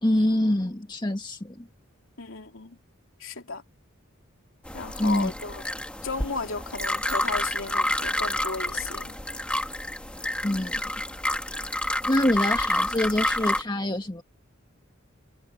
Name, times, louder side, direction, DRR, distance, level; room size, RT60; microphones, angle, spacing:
voice 1, 0.0-1.7 5.0-5.3 10.4-10.8 12.1-14.2, left 1 dB, 20° left, 1.5 m, -25 dB
voice 2, 2.2-2.8 3.2-3.6 4.7-5.6 6.0-9.2, left 4 dB, 80° left, 3.0 m, -34 dB
sound 1, 4.6-13.6, left 1 dB, 5° left, 1.4 m, -29 dB
sound 2, 6.7-7.8, right 8 dB, 15° right, 6.6 m, -46 dB
head